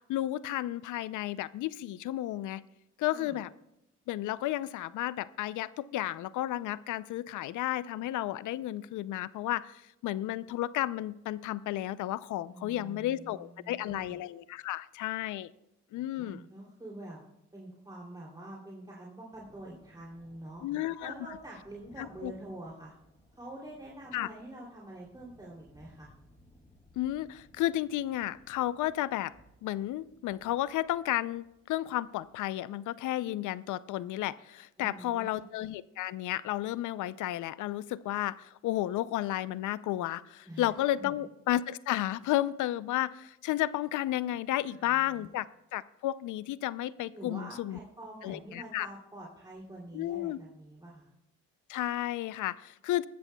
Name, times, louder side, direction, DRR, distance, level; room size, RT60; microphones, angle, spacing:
voice 1, 0.0-2.6 3.0-3.5 4.1-9.7 10.0-15.5 15.9-16.4 20.6-21.1 22.0-22.3 24.1-24.3 27.0-29.3 29.6-45.5 45.7-47.8 48.2-48.9 49.9-50.4 51.7-53.1, left 14 dB, 80° left, 17 dB, 0.5 m, -32 dB
voice 2, 12.5-14.2 16.2-17.2 17.5-20.6 21.0-22.9 23.3-26.1 34.8-35.4 40.4-40.7 41.0-41.2 44.7-45.3 47.1-51.1, right 1 dB, 15° right, -4 dB, 2.8 m, -46 dB
Thunder, 19.3-32.4, left 1 dB, 20° left, 2.4 m, -62 dB
19.5 x 13.0 x 2.3 m, 0.85 s
cardioid pair, 90°, 30 cm